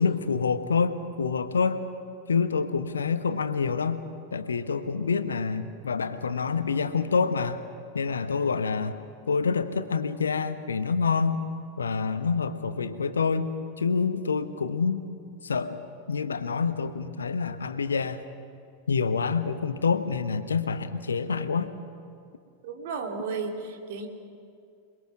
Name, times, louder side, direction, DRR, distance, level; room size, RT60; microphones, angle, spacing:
voice 1, 0.0-1.8 2.3-4.0 4.3-7.6 7.9-8.9 9.3-11.4 11.8-13.5 13.8-15.0 15.4-18.2 18.9-21.7, left 5 dB, 70° left, 11 dB, 1.1 m, -27 dB
voice 2, 22.6-24.1, right 4 dB, 55° right, 3 dB, 2.8 m, -33 dB
27.5 x 20.5 x 6.0 m, 2.3 s
figure-of-eight pair, 90°, 0 cm